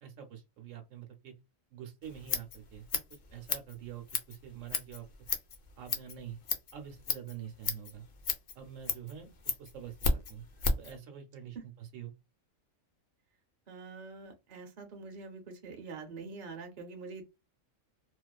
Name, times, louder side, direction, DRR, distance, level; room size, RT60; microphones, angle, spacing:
voice 1, 0.0-1.3 1.7-5.1 5.8-6.4 6.7-8.0 8.6-10.4 10.8-12.1, right 9 dB, 75° right, 1.0 m, -46 dB
Scissors, 2.0-10.9, left 4 dB, 65° left, 0.6 m, -35 dB
voice 2, 13.7-17.2, right 4 dB, 50° right, 0.7 m, -45 dB
2.3 x 2.3 x 2.2 m
omnidirectional pair, 1.4 m